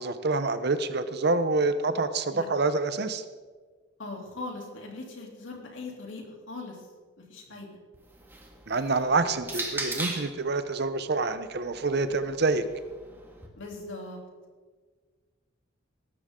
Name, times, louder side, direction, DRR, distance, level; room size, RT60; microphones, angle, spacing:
voice 1, 0.0-3.2 8.7-12.6, right 3 dB, 55° right, 11 dB, 0.8 m, -27 dB
voice 2, 4.0-6.8 7.2-7.8 13.5-14.2, left 2 dB, 80° left, 0 dB, 3.3 m, -40 dB
sound 1, 7.9-10.4 11.4-13.5, right 2 dB, 10° right, 2.0 m, -38 dB
19.5 x 13.0 x 3.8 m, 1.4 s
head